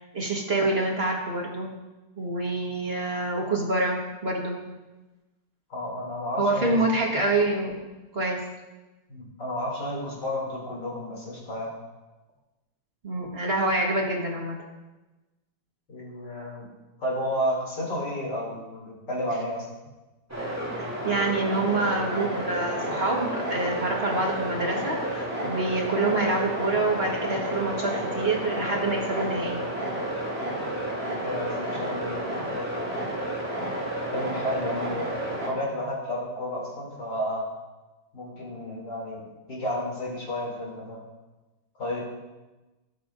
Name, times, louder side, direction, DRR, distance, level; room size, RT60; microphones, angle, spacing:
voice 1, 0.1-1.7 2.2-4.6 6.4-7.9 8.1-8.4 13.0-14.6 20.7-29.6, right 2 dB, 35° right, -1 dB, 1.4 m, -26 dB
voice 2, 5.7-6.9 9.1-11.7 15.9-16.7 17.0-19.7 31.2-33.1 34.1-37.5 38.1-41.0 41.8-42.0, equal, 55° left, -3 dB, 3.4 m, -32 dB
sound 1, 20.3-35.5, right 1 dB, 5° right, 2.3 m, -31 dB
18.0 x 7.4 x 2.5 m, 1.1 s
omnidirectional pair, 2.3 m